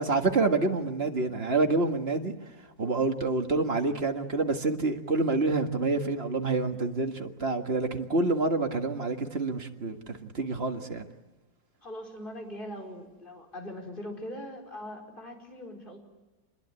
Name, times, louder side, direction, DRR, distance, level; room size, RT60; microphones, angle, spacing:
voice 1, 0.0-2.3 2.8-11.1, right 3 dB, 35° right, 5 dB, 1.9 m, -27 dB
voice 2, 11.8-16.0, left 1 dB, 25° left, 2 dB, 4.9 m, -41 dB
27.5 x 21.5 x 9.7 m, 1.2 s
omnidirectional pair, 2.0 m